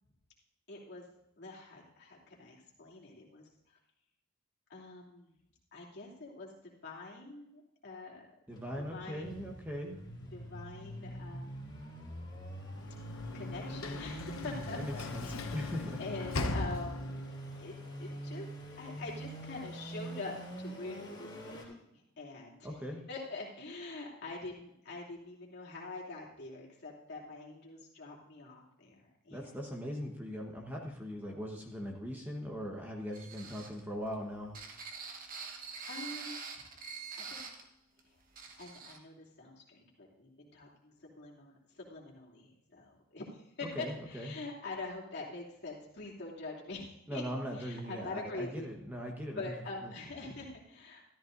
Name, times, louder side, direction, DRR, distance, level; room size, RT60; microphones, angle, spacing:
voice 1, 0.7-1.0 1.4-3.5 4.7-5.3 5.7-8.3 8.8-9.3 10.3-11.8 13.3-17.1 17.6-18.5 18.8-22.7 23.1-29.6 35.6-36.7 37.2-37.4 38.6-47.2 47.5-48.7 49.4-51.1, left 3 dB, 55° left, -3 dB, 2.9 m, -45 dB
sound 1, 8.5-21.6, equal, 20° left, 3.1 m, -44 dB
voice 2, 8.5-10.0 14.7-16.0 22.6-23.1 29.3-34.6 43.7-44.4 47.1-49.5 49.8-49.9, equal, 10° right, 0 dB, 1.2 m, -40 dB
Sliding door / Slam, 12.7-17.4, left 2 dB, 75° left, 0.9 m, -39 dB
sound 2, 33.1-37.7 38.0-38.1 38.4-39.0, right 5 dB, 40° right, 1.2 m, -45 dB
13.5 x 13.5 x 2.6 m, 0.80 s
head